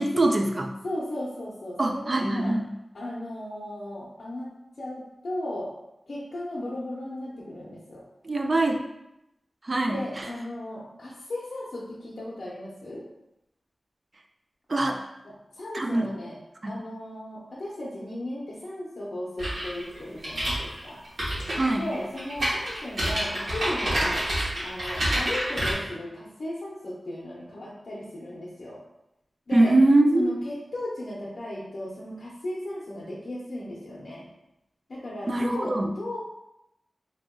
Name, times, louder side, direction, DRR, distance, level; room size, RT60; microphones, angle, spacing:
voice 1, 0.0-0.7 1.8-2.7 8.2-8.8 9.6-10.3 14.7-15.0 15.7-16.1 16.6-16.7 21.6-21.9 29.5-30.3 35.3-35.9, right 2 dB, 45° right, 3 dB, 0.4 m, -23 dB
voice 2, 0.8-2.5 2.9-4.5 4.8-5.7 6.1-8.0 9.9-13.0 15.6-16.3 16.7-21.0 21.8-24.2 24.6-28.8 29.5-29.7 30.1-34.2 34.9-36.2, left 1 dB, 65° left, -7 dB, 0.7 m, -36 dB
keyboard typing, 19.4-25.7, equal, 70° right, 1.3 m, -28 dB
2.9 x 2.5 x 3.7 m, 0.87 s
wide cardioid pair, 75°, 0 cm